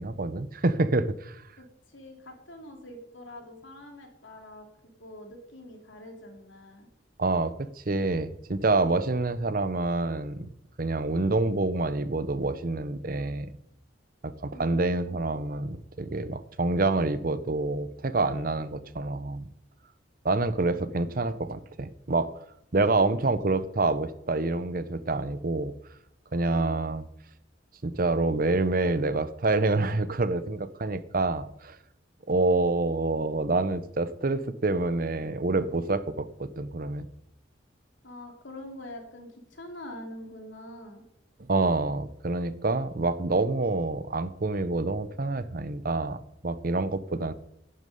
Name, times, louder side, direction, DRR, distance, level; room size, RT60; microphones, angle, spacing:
voice 1, 0.0-1.4 7.2-10.5 10.8-13.5 14.2-19.5 20.2-22.3 22.7-25.7 26.3-27.0 27.8-31.8 32.3-37.0 41.4-47.3, right 2 dB, 50° right, 14 dB, 0.8 m, -27 dB
voice 2, 1.6-4.7 5.0-6.9 14.5-15.4 26.5-26.8 38.0-41.0, left 1 dB, 80° left, 3 dB, 2.8 m, -45 dB
11.0 x 9.6 x 5.3 m, 0.79 s
head